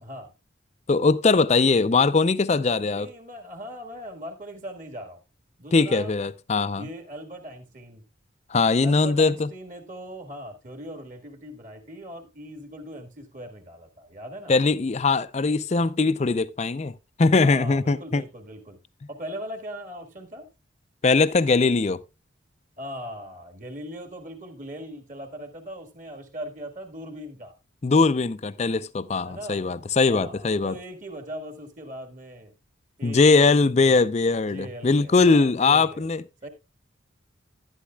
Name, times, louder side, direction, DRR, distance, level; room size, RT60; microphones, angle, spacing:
voice 1, 0.9-3.1 5.7-6.9 8.5-9.5 14.5-18.2 21.0-22.0 27.8-30.8 33.0-36.2, left 4 dB, 35° left, 0.4 m, -21 dB
voice 2, 2.5-5.2 5.6-6.1 6.7-8.0 8.8-14.5 17.4-18.8 19.1-20.5 22.8-27.5 29.2-29.6 30.1-32.5 33.0-34.1 34.4-36.0 36.4-36.5, equal, 40° right, 1.6 m, -39 dB
11.5 x 11.0 x 2.3 m
head